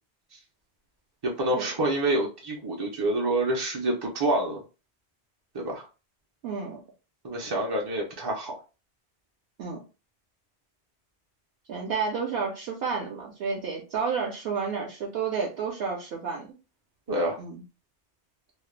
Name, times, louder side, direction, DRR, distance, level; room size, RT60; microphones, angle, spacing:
voice 1, 1.4-4.6 5.5-5.9 7.2-8.5 17.1-17.4, right 1 dB, 40° right, -1 dB, 0.3 m, -27 dB
voice 2, 6.4-6.8 9.6-9.8 11.7-16.5 17.4-17.6, right 5 dB, 70° right, -1 dB, 0.8 m, -31 dB
2.3 x 2.0 x 3.0 m, 0.31 s
omnidirectional pair, 1.1 m